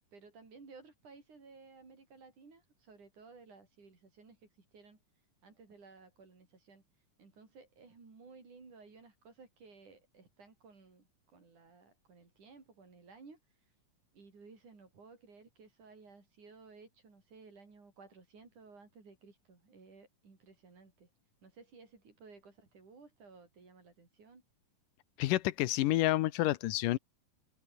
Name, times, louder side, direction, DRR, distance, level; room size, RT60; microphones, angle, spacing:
voice 1, 0.1-5.0 5.4-6.8 7.2-13.4 14.1-21.1 21.4-24.4, right 4 dB, 70° right, 7.4 m, -57 dB
voice 2, 25.2-27.0, left 16 dB, 85° left, 2.4 m, -29 dB
omnidirectional pair, 3.7 m